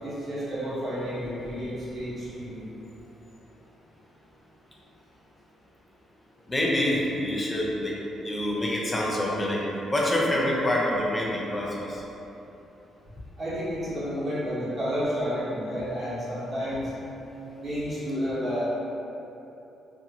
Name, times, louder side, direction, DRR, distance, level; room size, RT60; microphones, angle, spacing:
voice 1, 0.0-2.6 13.4-16.9 17.6-18.6, equal, 45° right, -12 dB, 1.2 m, -31 dB
voice 2, 6.5-8.0 8.2-9.6 9.9-12.0, left 1 dB, 20° left, -4 dB, 0.6 m, -26 dB
2.7 x 2.4 x 2.8 m, 3.0 s
cardioid pair, 90°, 0 cm